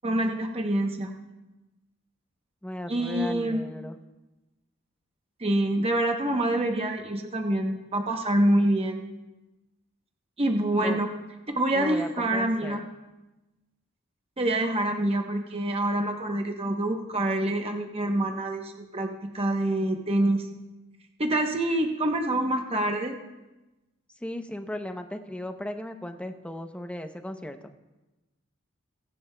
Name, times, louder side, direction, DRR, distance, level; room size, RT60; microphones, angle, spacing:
voice 1, 0.0-1.1 2.9-3.6 5.4-9.0 10.4-11.1 11.5-12.8 14.4-20.5 21.2-23.1, right 1 dB, 30° right, 3 dB, 0.8 m, -26 dB
voice 2, 2.6-4.0 10.8-11.0 11.7-12.8 24.2-27.7, left 1 dB, 5° left, 7 dB, 0.6 m, -36 dB
20.0 x 10.5 x 2.2 m, 1.1 s
head